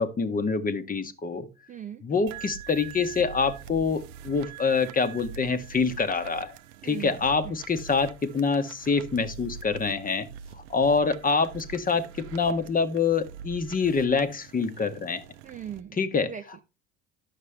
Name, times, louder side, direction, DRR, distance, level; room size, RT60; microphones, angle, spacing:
voice 1, 0.0-1.5 2.0-6.6 6.8-10.3 10.7-15.2 16.0-16.3, left 5 dB, 20° left, 11 dB, 0.9 m, -26 dB
voice 2, 1.7-2.0 6.8-7.1 7.4-7.6 15.4-16.6, right 9 dB, 20° right, 8 dB, 0.4 m, -39 dB
sound 1, 2.3-15.8, right 7 dB, 70° right, 0.6 m, -44 dB
10.0 x 6.5 x 3.3 m, 0.30 s
figure-of-eight pair, 65°, 38 cm